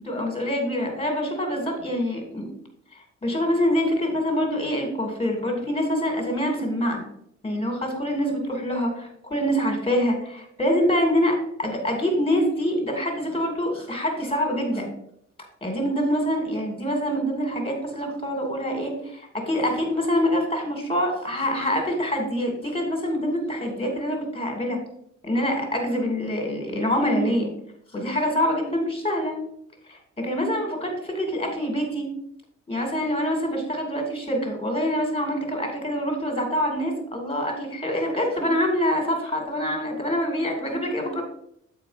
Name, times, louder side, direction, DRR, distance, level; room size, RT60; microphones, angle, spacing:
voice 1, 0.0-2.5 3.2-7.0 7.4-14.9 15.6-24.8 25.2-27.5 27.9-29.4 30.2-32.1 32.7-41.2, equal, 20° left, 2 dB, 2.7 m, -25 dB
7.5 x 4.8 x 5.1 m, 0.70 s
cardioid pair, 90°, 31 cm